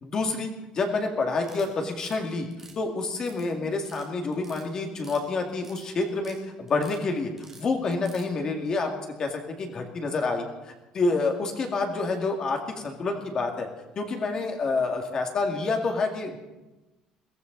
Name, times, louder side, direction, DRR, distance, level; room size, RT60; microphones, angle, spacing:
voice 1, 0.0-2.5 2.8-8.9 9.2-10.5 10.9-13.7 14.0-16.4, left 3 dB, 30° left, 3 dB, 2.3 m, -28 dB
sound 1, 1.3-2.2 2.5-3.5 3.7-4.1 4.3-5.2 5.5-6.4 6.7-7.0 7.4-8.3, right 4 dB, 15° right, 3.4 m, -50 dB
22.5 x 15.5 x 4.0 m, 1.1 s
cardioid pair, 165°, 2 cm